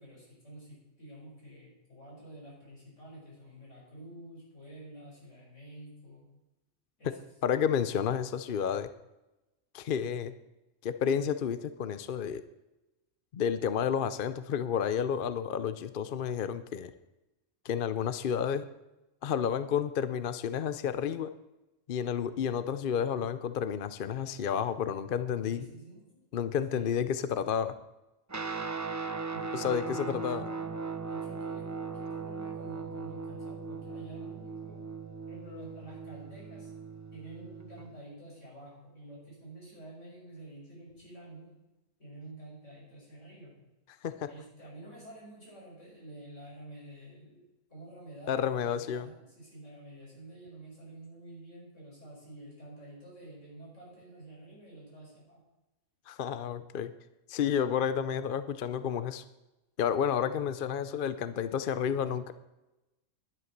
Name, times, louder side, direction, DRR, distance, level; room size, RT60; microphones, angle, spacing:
voice 1, 0.0-6.3 7.0-7.2 25.4-26.2 26.7-26.9 29.3-30.7 31.1-34.9 35.3-36.7 37.1-41.5 42.0-43.5 44.2-47.4 47.7-55.4, right 1 dB, 75° left, -5 dB, 6.8 m, -49 dB
voice 2, 7.4-8.9 9.7-10.3 10.8-12.4 13.3-16.9 17.6-18.6 19.2-21.3 21.9-25.6 26.3-27.7 29.5-30.4 44.0-44.3 48.3-49.1 56.1-56.9 57.3-59.2 59.8-62.3, left 8 dB, 55° left, 13 dB, 0.7 m, -31 dB
Guitar, 28.3-37.9, right 4 dB, 20° right, 0.4 m, -38 dB
11.0 x 11.0 x 6.6 m, 0.99 s
omnidirectional pair, 1.3 m